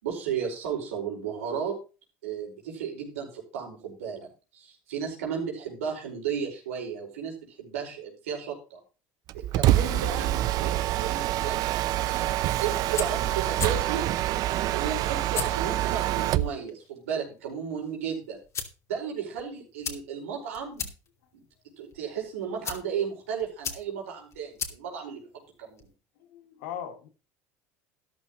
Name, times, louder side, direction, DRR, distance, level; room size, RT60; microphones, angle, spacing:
voice 1, 0.0-1.8 2.2-4.3 4.5-8.8 9.3-14.1 14.7-18.4 18.9-20.9 21.3-21.4 21.8-25.3 25.6-25.9, right 7 dB, 90° right, 5.0 m, -34 dB
Mechanisms, 9.3-16.6, right 14 dB, 60° right, 0.7 m, -26 dB
sound 1, 12.7-26.0, left 6 dB, 40° left, 2.6 m, -41 dB
voice 2, 26.2-27.1, left 9 dB, 80° left, 2.5 m, -39 dB
13.5 x 11.0 x 3.1 m
supercardioid pair, 85°, 7 cm